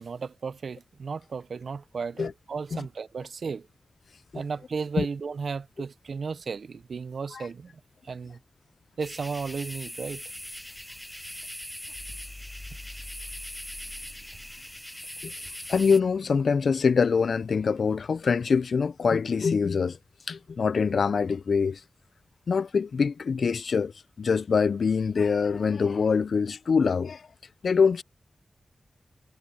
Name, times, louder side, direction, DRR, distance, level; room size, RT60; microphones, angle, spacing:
voice 1, 0.0-3.7 4.3-7.7 8.0-8.4 9.0-10.2, right 5 dB, 75° right, 0.4 m, -34 dB
sound 1, 9.0-16.0, left 1 dB, 5° left, 0.4 m, -41 dB
sound 2, 11.8-14.8, left 2 dB, 25° left, 3.0 m, -45 dB
voice 2, 15.2-20.0 20.3-21.8 22.5-23.9 24.2-27.3 27.6-28.0, left 5 dB, 75° left, 0.4 m, -24 dB
wide cardioid pair, 110°, 0 cm